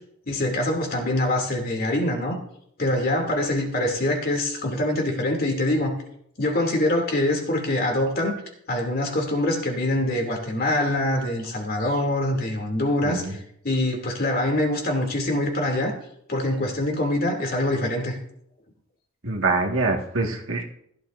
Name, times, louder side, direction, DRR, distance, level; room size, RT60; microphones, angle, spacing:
voice 1, 0.3-2.4 2.8-5.9 6.4-8.3 8.7-13.4 13.6-15.9 16.3-18.1, left 1 dB, 50° left, 1 dB, 2.8 m, -24 dB
voice 2, 19.2-20.6, right 3 dB, 75° right, 1 dB, 1.8 m, -24 dB
15.5 x 12.0 x 2.6 m, 0.71 s
head